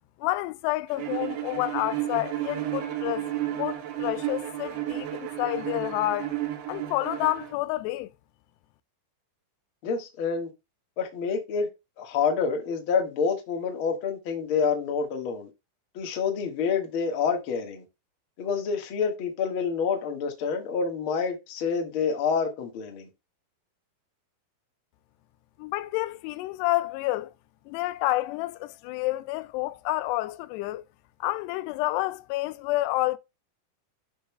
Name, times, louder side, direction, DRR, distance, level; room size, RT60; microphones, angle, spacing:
voice 1, 0.2-6.3 6.7-8.1 25.6-27.3 27.7-30.8 31.2-33.2, left 18 dB, 90° left, 2.7 m, -29 dB
Bowed string instrument, 1.0-7.6, right 13 dB, 75° right, 2.8 m, -32 dB
voice 2, 9.8-10.5 11.0-11.7 12.0-15.5 15.9-17.8 18.4-23.1, left 5 dB, 60° left, 1.4 m, -27 dB
12.0 x 5.3 x 2.2 m
omnidirectional pair, 4.7 m